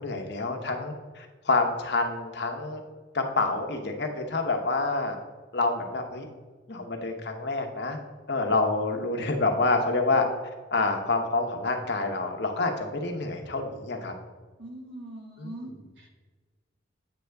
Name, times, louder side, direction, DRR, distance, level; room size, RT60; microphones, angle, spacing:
voice 1, 0.0-2.8 3.1-5.2 5.5-6.3 6.7-8.0 8.3-10.3 10.7-14.1 15.4-15.5, left 3 dB, 60° left, 3 dB, 1.0 m, -27 dB
voice 2, 14.6-16.1, right 1 dB, 65° right, 1 dB, 1.5 m, -42 dB
8.5 x 6.6 x 3.4 m, 1.4 s
head